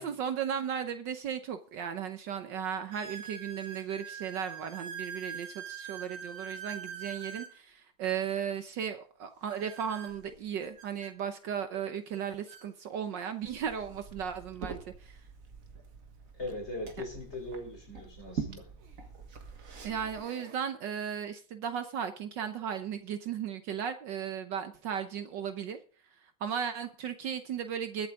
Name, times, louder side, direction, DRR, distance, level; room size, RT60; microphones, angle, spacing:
voice 1, 0.0-15.2 19.8-25.8 26.4-28.1, right 8 dB, 65° right, 1.5 m, -36 dB
sound 1, 1.2-1.3 1.9-2.0 2.9-7.6 9.5-11.1 12.1-12.2 12.5-12.7 13.5-13.6 15.8-15.9 17.9-18.0 18.8-19.1 19.6-20.6, right 7 dB, 85° right, 2.7 m, -44 dB
Liquid, 13.4-20.2, right 5 dB, 45° right, 1.8 m, -44 dB
voice 2, 16.3-18.7, left 2 dB, 30° left, 4.3 m, -40 dB
21.5 x 8.1 x 3.7 m
omnidirectional pair, 2.2 m